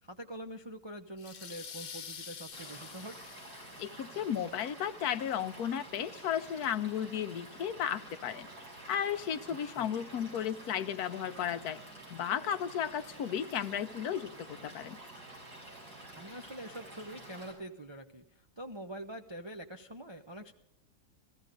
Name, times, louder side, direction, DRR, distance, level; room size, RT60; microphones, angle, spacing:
voice 1, 0.0-3.3 9.7-9.9 16.2-20.5, right 1 dB, 35° right, 3 dB, 0.4 m, -45 dB
sound 1, 1.2-4.6, left 6 dB, 50° left, 0.5 m, -47 dB
Stream / Liquid, 2.5-17.5, right 1 dB, 80° right, 6.4 m, -50 dB
voice 2, 3.8-8.5 8.9-11.8 12.1-15.0, left 9 dB, 70° left, 11 dB, 1.2 m, -34 dB
15.0 x 15.0 x 5.2 m, 0.87 s
omnidirectional pair, 1.7 m